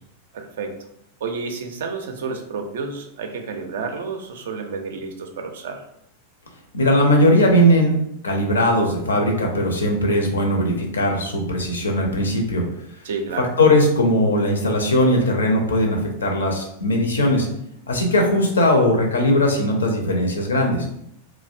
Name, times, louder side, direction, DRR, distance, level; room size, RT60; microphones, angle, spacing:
voice 1, 0.3-0.8 1.2-5.8 13.0-13.5, right 4 dB, 60° right, 5 dB, 0.3 m, -30 dB
voice 2, 6.7-7.9 8.2-12.6 13.6-17.5 17.9-20.9, left 1 dB, 70° left, 2 dB, 0.5 m, -19 dB
2.5 x 2.0 x 2.4 m, 0.78 s
figure-of-eight pair, 90°, 0 cm